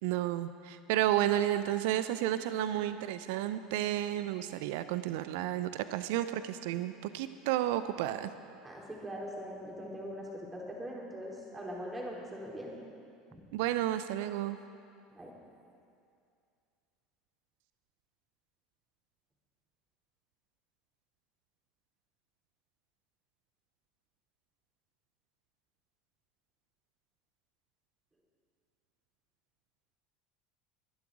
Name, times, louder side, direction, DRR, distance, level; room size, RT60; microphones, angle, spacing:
voice 1, 0.0-8.3 13.5-14.6, right 13 dB, 60° right, 12 dB, 0.6 m, -32 dB
voice 2, 8.6-12.8 13.3-13.5 15.1-15.3, equal, 20° right, -2 dB, 3.8 m, -42 dB
23.0 x 11.5 x 4.9 m, 2.4 s
figure-of-eight pair, 70°, 0 cm